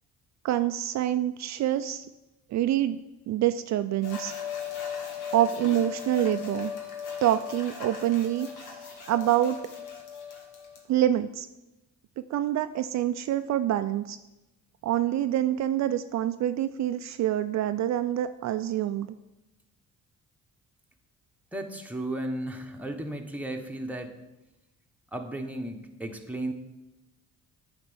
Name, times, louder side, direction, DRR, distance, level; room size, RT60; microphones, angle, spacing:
voice 1, 0.4-2.1 2.5-3.0 3.3-4.3 5.3-6.7 7.2-8.5 9.1-9.6 10.9-11.5 12.3-14.2 14.8-19.1, right 12 dB, 65° right, 10 dB, 0.4 m, -26 dB
sound 1, 4.0-10.8, left 7 dB, 80° left, 1.8 m, -37 dB
voice 2, 21.5-24.2 25.1-26.5, right 1 dB, 5° right, 3 dB, 1.1 m, -34 dB
9.2 x 4.4 x 7.1 m, 0.98 s
cardioid pair, 90°, 30 cm